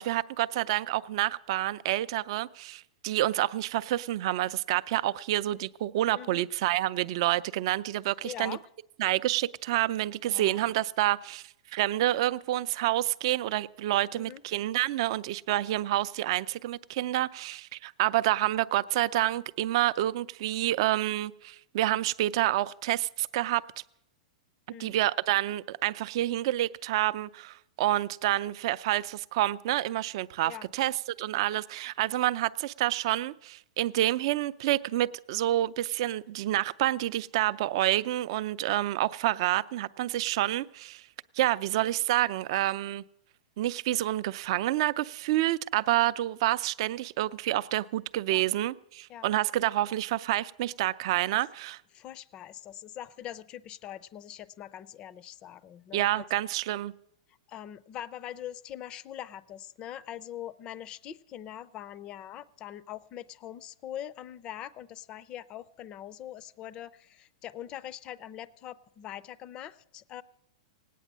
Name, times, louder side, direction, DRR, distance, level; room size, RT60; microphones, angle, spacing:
voice 1, 0.0-8.6 9.0-11.4 11.7-23.6 24.8-41.0 41.4-43.0 43.6-51.8 55.9-56.9, right 15 dB, 50° right, 0.5 m, -28 dB
voice 2, 6.1-6.5 8.2-8.6 10.3-10.7 14.2-14.4 24.7-25.0 30.4-30.7 48.3-48.4 49.1-49.3 51.9-56.2 57.5-70.2, left 11 dB, 25° left, 0.5 m, -42 dB
18.0 x 9.2 x 7.3 m
supercardioid pair, 155°, 3 cm